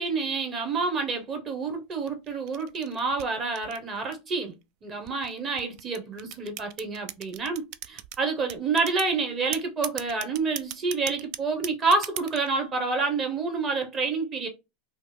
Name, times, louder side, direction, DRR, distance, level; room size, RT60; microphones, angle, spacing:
voice 1, 0.0-4.6 4.8-14.5, right 4 dB, 35° right, 1.0 m, -28 dB
sound 1, 1.9-4.4 5.1-8.2 8.5-9.1 9.5-12.5, right 12 dB, 55° right, 0.3 m, -37 dB
3.0 x 2.1 x 3.3 m
hypercardioid pair, 95°, 0 cm